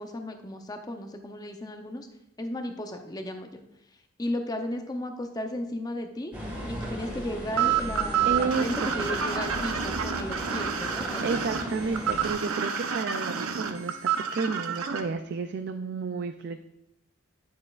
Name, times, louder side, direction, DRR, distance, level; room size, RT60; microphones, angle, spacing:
voice 1, 0.0-2.1 2.4-3.6 4.2-6.3 6.7-11.4, left 1 dB, 20° left, 5 dB, 0.6 m, -35 dB
sound 1, 6.3-12.3, equal, 10° right, 1.6 m, -37 dB
sound 2, 7.6-15.0, right 7 dB, 90° right, 0.8 m, -28 dB
voice 2, 8.3-9.1 11.2-14.0 14.3-16.6, right 4 dB, 50° right, 8 dB, 0.3 m, -31 dB
9.6 x 6.9 x 2.4 m, 0.86 s
head